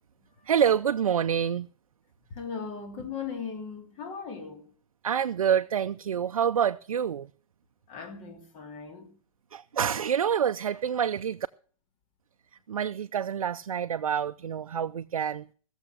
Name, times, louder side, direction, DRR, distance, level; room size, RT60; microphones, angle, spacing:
voice 1, 0.4-1.7 5.0-7.3 9.5-11.4 12.7-15.5, right 8 dB, 85° right, 0.5 m, -27 dB
voice 2, 2.3-4.7 7.9-9.1, left 6 dB, 35° left, 2.8 m, -38 dB
17.0 x 7.0 x 6.5 m
hypercardioid pair, 130°, 17 cm